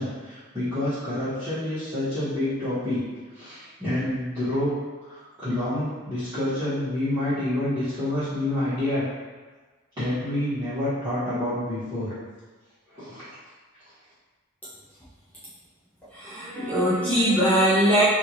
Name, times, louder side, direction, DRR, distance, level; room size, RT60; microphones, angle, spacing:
voice 1, 0.0-3.0 3.3-4.7 5.0-9.0 10.0-12.1 12.9-13.3, left 1 dB, 20° right, -19 dB, 1.4 m, -28 dB
voice 2, 16.1-18.0, equal, 5° left, -11 dB, 0.7 m, -21 dB
3.5 x 2.6 x 3.0 m, 1.3 s
head